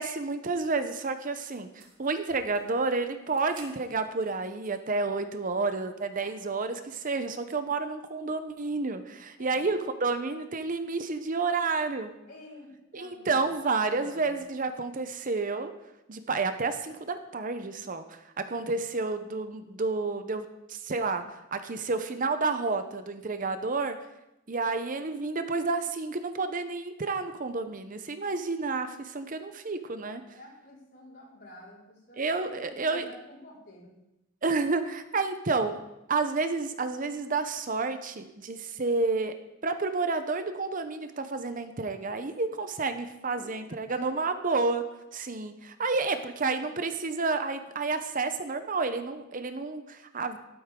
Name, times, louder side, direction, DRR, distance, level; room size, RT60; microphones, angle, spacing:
voice 1, 0.0-12.1 12.9-15.7 16.1-24.0 24.5-30.2 32.2-33.1 34.4-35.8 36.1-39.4 39.6-44.8 45.1-50.4, right 3 dB, 40° right, 9 dB, 0.7 m, -30 dB
sound 1, 1.3-5.0 5.4-5.5 6.1-6.6, right 3 dB, 90° right, 3.1 m, -55 dB
voice 2, 12.3-13.5 13.8-14.3 30.3-33.9 43.3-44.2, left 1 dB, 55° left, -6 dB, 4.7 m, -50 dB
13.0 x 12.0 x 3.7 m, 0.91 s
head